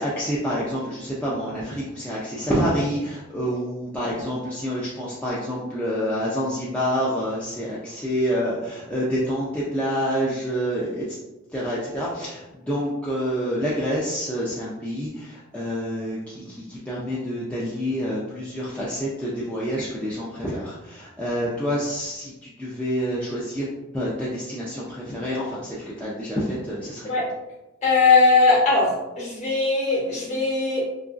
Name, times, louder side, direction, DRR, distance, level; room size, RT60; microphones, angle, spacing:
voice 1, 0.0-11.0 11.5-23.7 23.9-27.1, equal, 5° left, -8 dB, 0.3 m, -27 dB
voice 2, 27.8-30.8, left 3 dB, 35° left, -4 dB, 0.9 m, -19 dB
2.9 x 2.5 x 2.4 m, 0.97 s
head